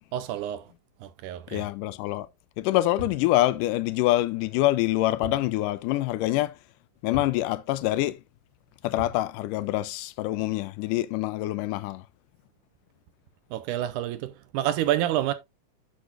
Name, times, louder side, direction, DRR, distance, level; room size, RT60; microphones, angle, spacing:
voice 1, 0.1-0.7 1.0-1.7 13.5-15.3, right 12 dB, 80° right, 2.1 m, -28 dB
voice 2, 1.5-2.3 2.6-6.6 7.0-8.2 8.8-12.0, left 16 dB, 80° left, 2.0 m, -25 dB
sound 1, 3.0-3.3 5.2-5.5 5.8-5.9 7.1-7.4 9.0-9.3, left 2 dB, 55° left, 3.6 m, -38 dB
10.0 x 6.3 x 2.4 m
omnidirectional pair, 3.8 m